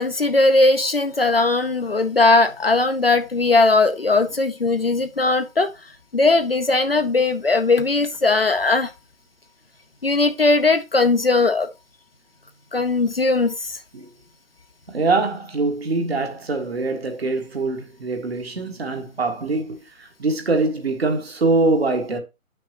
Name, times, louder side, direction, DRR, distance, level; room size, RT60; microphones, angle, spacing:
voice 1, 0.0-5.7 6.1-8.9 10.0-11.7 12.7-13.8, left 3 dB, 45° left, 0.7 m, -19 dB
voice 2, 14.9-22.2, right 3 dB, 45° right, 1.6 m, -23 dB
9.5 x 6.0 x 2.9 m
figure-of-eight pair, 160°, 41 cm